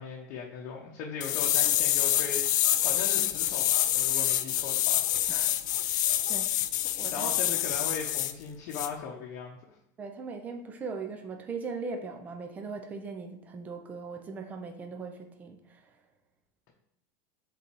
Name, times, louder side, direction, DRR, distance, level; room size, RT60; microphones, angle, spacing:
voice 1, 0.0-5.0 6.4-6.5 7.1-9.8, left 5 dB, 45° left, -1 dB, 0.9 m, -39 dB
sound 1, 1.2-8.3 8.7-8.9, left 13 dB, 80° left, 0.5 m, -27 dB
voice 2, 5.3-6.5 6.8-7.3 10.0-15.9, right 4 dB, 15° right, 5 dB, 0.6 m, -40 dB
5.6 x 3.9 x 4.7 m, 0.80 s
supercardioid pair, 165°, 10 cm